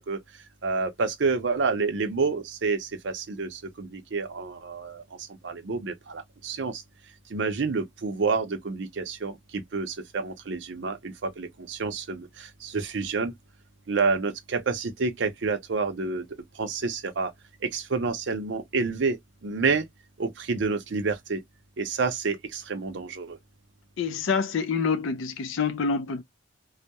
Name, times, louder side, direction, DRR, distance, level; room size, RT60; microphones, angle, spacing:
voice 1, 0.6-5.0 5.4-6.8 7.3-13.3 13.9-16.3 16.6-17.3 17.7-19.2 19.4-19.9 20.2-21.4 21.8-23.4, right 4 dB, 65° right, 0.6 m, -28 dB
voice 2, 24.0-26.2, left 5 dB, 85° left, 0.4 m, -27 dB
2.2 x 2.0 x 2.7 m
head